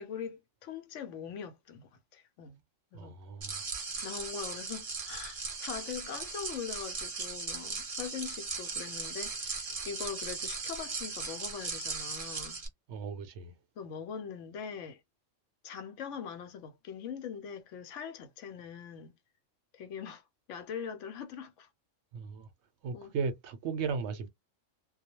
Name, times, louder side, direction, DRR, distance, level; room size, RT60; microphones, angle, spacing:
voice 1, 0.0-2.6 2.9-3.1 4.0-12.6 13.8-15.0 15.6-19.1 19.7-20.2 20.5-21.7 22.9-23.1, left 7 dB, 75° left, 0.9 m, -42 dB
voice 2, 2.9-3.7 12.9-13.5 22.1-22.5 22.8-24.3, right 5 dB, 65° right, 0.9 m, -36 dB
sound 1, 3.4-12.7, right 4 dB, 35° right, 0.6 m, -38 dB
2.3 x 2.2 x 2.9 m
omnidirectional pair, 1.3 m